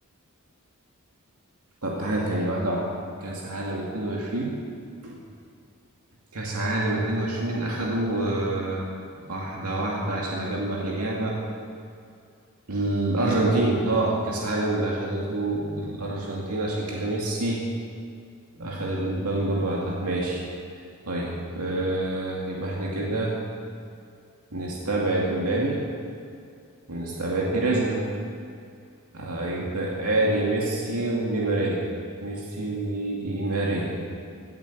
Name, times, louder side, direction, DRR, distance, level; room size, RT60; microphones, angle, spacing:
voice 1, 1.8-2.9 3.2-4.6 5.0-5.2 6.3-8.9 9.3-11.4 12.7-17.6 18.6-20.4 21.1-23.4 24.5-25.8 26.9-28.0 29.1-31.8 32.2-33.9, right 2 dB, 85° right, -3 dB, 2.3 m, -27 dB
17.5 x 9.1 x 7.3 m, 2.4 s
head